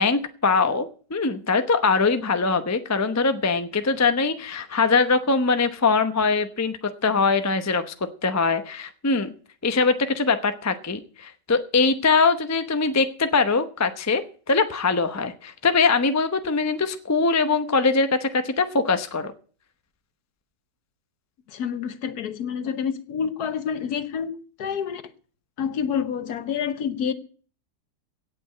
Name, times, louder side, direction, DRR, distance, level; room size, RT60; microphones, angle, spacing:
voice 1, 0.0-7.9 8.2-9.3 9.6-19.3, left 4 dB, 20° left, 0.5 m, -22 dB
voice 2, 21.5-25.0 25.6-27.1, left 7 dB, 65° left, 1.4 m, -28 dB
17.0 x 6.1 x 7.7 m
omnidirectional pair, 1.8 m